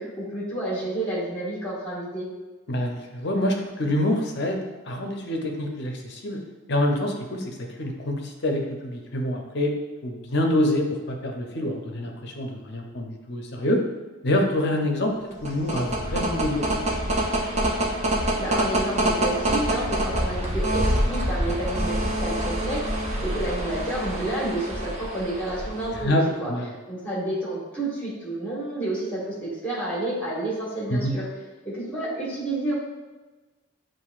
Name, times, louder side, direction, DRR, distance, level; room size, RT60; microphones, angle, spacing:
voice 1, 0.0-2.3 18.3-26.5 26.9-31.3 31.6-32.7, right 1 dB, 5° left, -7 dB, 1.5 m, -30 dB
voice 2, 2.7-6.4 6.7-9.7 10.0-13.8 14.2-15.1 15.4-17.2 25.9-26.7 30.9-31.2, left 1 dB, 50° left, 2 dB, 0.6 m, -26 dB
sound 1, 15.3-26.1, right 1 dB, 30° right, 0.7 m, -26 dB
7.5 x 2.6 x 2.4 m, 1.2 s
head